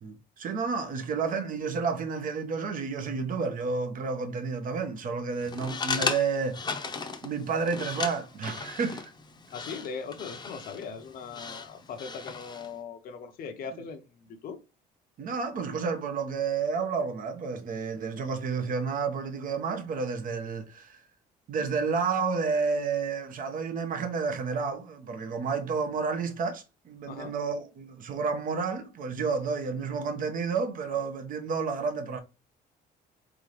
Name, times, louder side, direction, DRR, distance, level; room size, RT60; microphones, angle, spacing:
voice 1, 0.0-6.8 7.2-9.1 15.2-21.0 21.5-32.2, right 5 dB, 55° right, 1.2 m, -30 dB
sound 1, 5.4-12.7, left 4 dB, 25° left, 0.8 m, -36 dB
voice 2, 9.5-14.6 27.1-27.3, left 5 dB, 60° left, 0.8 m, -40 dB
3.9 x 3.7 x 3.2 m
cardioid pair, 110°, 17 cm